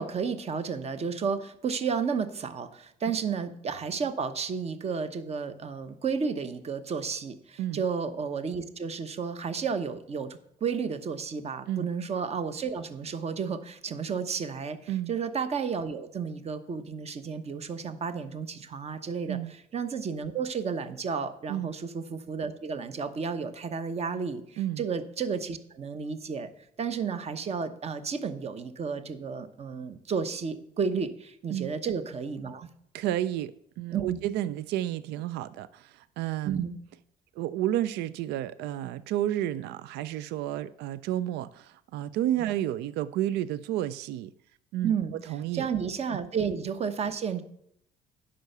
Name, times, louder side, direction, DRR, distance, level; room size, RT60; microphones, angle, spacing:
voice 1, 0.0-26.5 26.8-32.7 33.9-34.2 36.4-36.7 44.8-47.4, right 6 dB, 40° right, 0.9 m, -32 dB
voice 2, 32.9-36.6 37.4-44.3 44.7-44.9 45.3-45.7, right 12 dB, 80° right, 0.4 m, -31 dB
9.4 x 5.7 x 6.6 m
cardioid pair, 110°, 17 cm